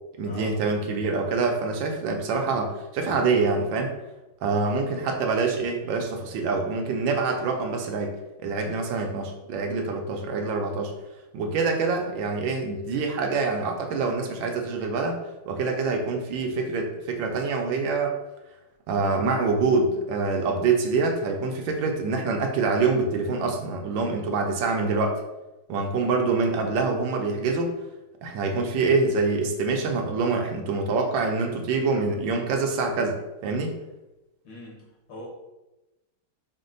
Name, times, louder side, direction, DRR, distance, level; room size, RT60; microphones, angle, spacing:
voice 1, 0.2-3.9 4.4-8.1 8.4-10.9 11.3-15.2 15.5-18.1 18.9-25.1 25.7-27.7 28.2-33.2 33.4-33.7, right 4 dB, 75° right, 2 dB, 1.3 m, -25 dB
voice 2, 34.4-35.3, left 1 dB, 90° left, -4 dB, 2.3 m, -42 dB
5.2 x 2.1 x 3.8 m, 1.0 s
omnidirectional pair, 2.2 m